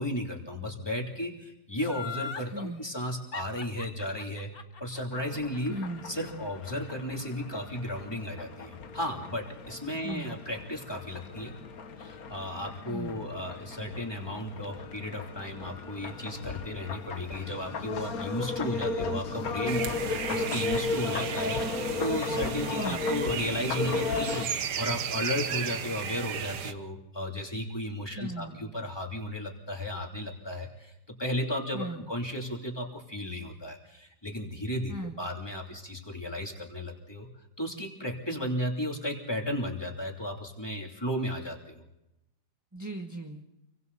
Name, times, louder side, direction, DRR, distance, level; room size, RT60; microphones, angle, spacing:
voice 1, 0.0-4.5 4.8-5.7 6.0-11.5 12.0-24.5 24.8-30.9 31.2-37.3 37.6-41.8, left 1 dB, 15° left, 0 dB, 3.1 m, -34 dB
Laughter, 1.8-2.5 3.3-6.4 6.8-6.9, left 5 dB, 40° left, 1.3 m, -39 dB
voice 2, 2.5-2.8 5.7-6.1 10.0-10.4 12.9-13.3 22.8-23.1 28.1-28.7 31.7-32.1 34.9-35.2 42.7-43.4, right 1 dB, 10° right, 2 dB, 1.4 m, -38 dB
sound 1, 5.1-24.5, left 4 dB, 60° left, 1.7 m, -35 dB
sound 2, 19.7-26.7, right 8 dB, 85° right, 1.6 m, -35 dB
28.5 x 24.0 x 4.1 m, 0.89 s
omnidirectional pair, 1.7 m